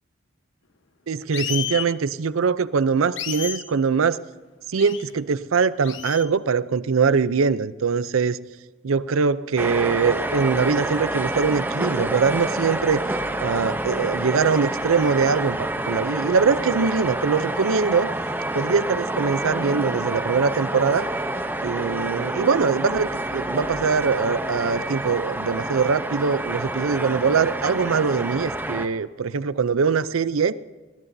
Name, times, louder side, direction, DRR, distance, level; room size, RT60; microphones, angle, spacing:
voice 1, 1.1-4.2 4.7-8.4 8.8-13.0 13.4-18.1 18.5-21.1 21.6-30.5, right 5 dB, 90° right, 16 dB, 0.5 m, -22 dB
sound 1, 1.3-1.9 3.2-3.6 4.8-5.0 5.8-6.3, left 9 dB, 65° left, 1.1 m, -30 dB
sound 2, 9.6-28.9, right 1 dB, 10° right, 0.7 m, -28 dB
20.5 x 17.5 x 2.7 m, 1.2 s
head